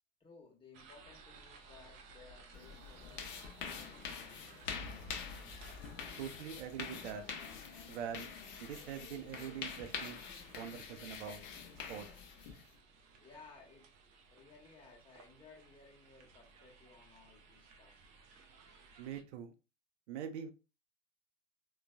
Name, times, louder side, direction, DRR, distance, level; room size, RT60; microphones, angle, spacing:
voice 1, 0.2-4.6 12.8-18.9, left 4 dB, 15° left, -1 dB, 1.0 m, -60 dB
sound 1, 0.7-19.2, right 4 dB, 20° right, 0.3 m, -60 dB
sound 2, 2.5-12.7, left 6 dB, 30° left, 0.6 m, -46 dB
sound 3, 4.6-7.2, left 2 dB, 50° left, 1.2 m, -52 dB
voice 2, 6.2-7.2 7.9-8.3 8.6-10.2 10.6-11.4 11.9-12.1 19.0-19.5 20.1-20.5, right 8 dB, 60° right, 7 dB, 0.6 m, -43 dB
3.8 x 2.3 x 2.3 m, 0.30 s
figure-of-eight pair, 95°, 38 cm